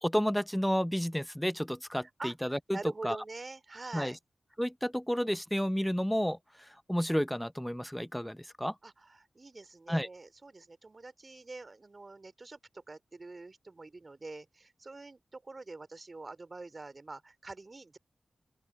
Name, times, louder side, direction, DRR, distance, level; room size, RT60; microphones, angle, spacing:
voice 1, 0.0-2.8 3.0-3.2 3.9-4.1 4.6-6.4 6.9-8.7 9.9-10.1, equal, 5° left, 0.7 m, -31 dB
voice 2, 2.0-4.2 8.8-18.0, right 3 dB, 45° right, 3.3 m, -45 dB
open air
cardioid pair, 40°, 0 cm